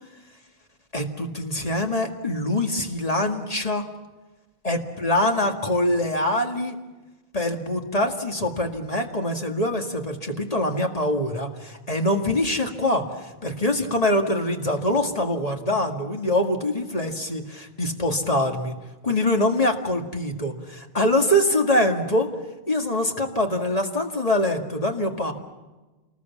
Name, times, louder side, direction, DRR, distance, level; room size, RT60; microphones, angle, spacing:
voice 1, 0.9-3.8 4.6-6.8 7.3-18.8 19.0-22.3 22.7-25.3, left 1 dB, 40° left, 3 dB, 2.1 m, -24 dB
27.5 x 20.0 x 7.3 m, 1.2 s
omnidirectional pair, 1.0 m